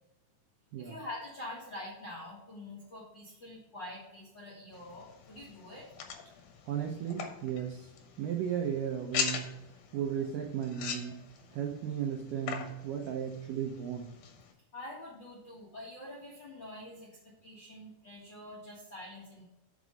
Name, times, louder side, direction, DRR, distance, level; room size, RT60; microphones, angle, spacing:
voice 1, 0.8-5.9 14.7-19.4, left 1 dB, 50° left, -6 dB, 1.3 m, -46 dB
sound 1, 4.7-14.5, left 6 dB, 70° left, 2.6 m, -42 dB
voice 2, 6.7-7.9 8.2-9.5 9.9-11.2 11.5-14.1, right 9 dB, 80° right, 1 dB, 2.0 m, -35 dB
6.2 x 5.3 x 6.3 m, 0.92 s
omnidirectional pair, 4.7 m